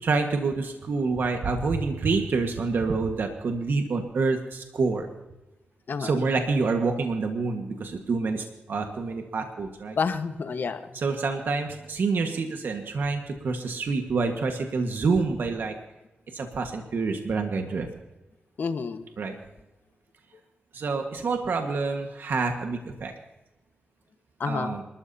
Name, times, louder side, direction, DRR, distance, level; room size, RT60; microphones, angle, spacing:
voice 1, 0.0-5.1 6.0-10.0 10.9-15.7 16.3-17.9 19.2-19.3 20.7-23.1 24.5-24.8, right 4 dB, 65° right, 4 dB, 1.6 m, -27 dB
voice 2, 10.0-10.9 18.6-19.1 24.4-24.8, left 5 dB, 60° left, 8 dB, 1.3 m, -29 dB
27.5 x 13.0 x 2.8 m, 1.0 s
cardioid pair, 70°, 4 cm